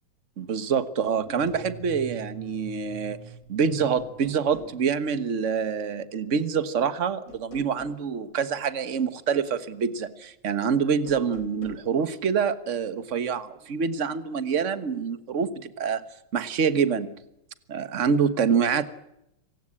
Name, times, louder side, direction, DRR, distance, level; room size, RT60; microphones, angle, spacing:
voice 1, 0.4-3.2 3.5-16.0 16.3-17.1 17.7-18.8, right 6 dB, 40° right, 13 dB, 1.5 m, -26 dB
sound 1, 1.2-5.3, right 2 dB, 15° left, 3.4 m, -45 dB
sound 2, 1.3-1.7 3.2-3.6 4.0-4.8 7.3-8.0 10.9-11.9, equal, 40° left, 3.6 m, -46 dB
27.0 x 17.5 x 8.6 m, 0.83 s
omnidirectional pair, 2.2 m